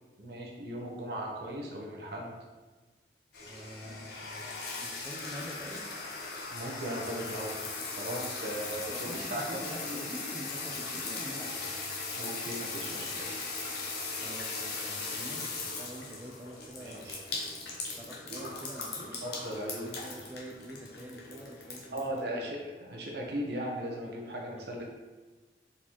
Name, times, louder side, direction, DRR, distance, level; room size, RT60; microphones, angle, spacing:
voice 1, 0.2-2.4 6.5-7.7 8.0-10.1 12.1-13.3 16.8-17.2 17.7-17.8 18.3-18.5 19.2-20.0 21.9-24.9, right 1 dB, 70° right, -1 dB, 0.8 m, -38 dB
sound 1, 3.3-22.2, left 3 dB, 65° left, 0.8 m, -39 dB
voice 2, 3.4-5.8 8.6-11.8 14.2-17.4 18.0-19.2 19.8-22.5 24.5-24.9, equal, 10° right, -1 dB, 0.4 m, -46 dB
4.1 x 3.9 x 3.0 m, 1.3 s
head